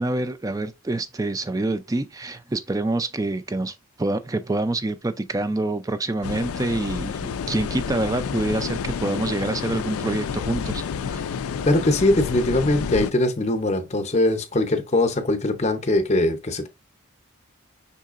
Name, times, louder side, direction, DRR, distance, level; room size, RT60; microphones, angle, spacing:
voice 1, 0.0-11.2, right 2 dB, 15° right, 0.3 m, -26 dB
sound 1, 6.2-13.1, left 6 dB, 80° left, 0.3 m, -29 dB
voice 2, 11.6-16.7, left 1 dB, 30° left, 0.7 m, -21 dB
5.6 x 3.7 x 2.4 m
head